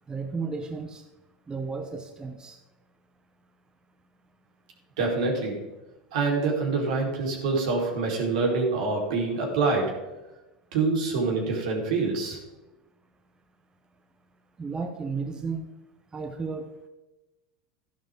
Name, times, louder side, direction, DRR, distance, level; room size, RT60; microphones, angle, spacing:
voice 1, 0.1-1.0 1.5-2.6 14.6-15.7 16.1-16.7, right 4 dB, 20° right, 5 dB, 1.1 m, -33 dB
voice 2, 5.0-5.6 6.1-10.1 10.7-12.4, right 3 dB, 75° right, -1 dB, 3.9 m, -26 dB
13.0 x 11.5 x 3.7 m, 1.0 s
hypercardioid pair, 100°, 4 cm